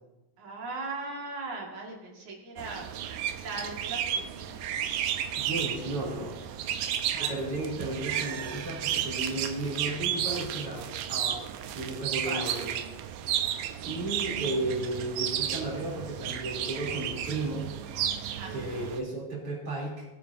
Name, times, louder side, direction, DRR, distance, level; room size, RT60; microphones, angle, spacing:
voice 1, 0.4-2.8 3.4-4.6 7.1-7.3 12.3-12.4 18.3-18.5, right 3 dB, 60° right, -2 dB, 3.5 m, -38 dB
sound 1, 2.6-19.0, right 10 dB, 80° right, 2.3 m, -33 dB
voice 2, 5.4-6.3 7.1-11.5 11.7-12.8 13.8-17.7 18.5-20.1, right 2 dB, 40° right, -4 dB, 4.3 m, -34 dB
21.5 x 8.8 x 2.8 m, 1.0 s
omnidirectional pair, 4.0 m